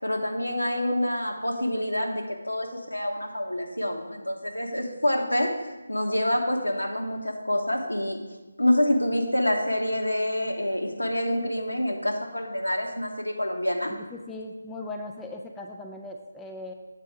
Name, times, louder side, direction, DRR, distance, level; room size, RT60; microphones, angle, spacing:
voice 1, 0.0-8.2 8.6-13.9, left 1 dB, 80° left, 2 dB, 1.2 m, -27 dB
voice 2, 14.3-16.7, left 2 dB, 5° left, 1 dB, 0.3 m, -38 dB
8.1 x 4.2 x 4.9 m, 1.1 s
figure-of-eight pair, 155°, 0 cm